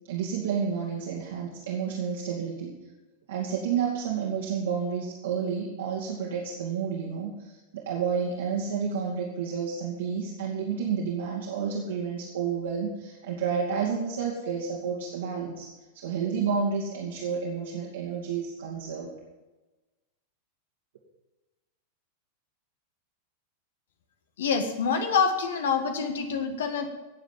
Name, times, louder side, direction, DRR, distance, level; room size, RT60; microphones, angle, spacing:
voice 1, 0.1-2.7 3.3-15.7 15.9-19.1, right 6 dB, 60° right, -2 dB, 2.3 m, -30 dB
voice 2, 24.4-26.9, left 5 dB, 60° left, 7 dB, 1.6 m, -26 dB
17.5 x 7.3 x 7.5 m, 1.1 s
figure-of-eight pair, 90°, 0 cm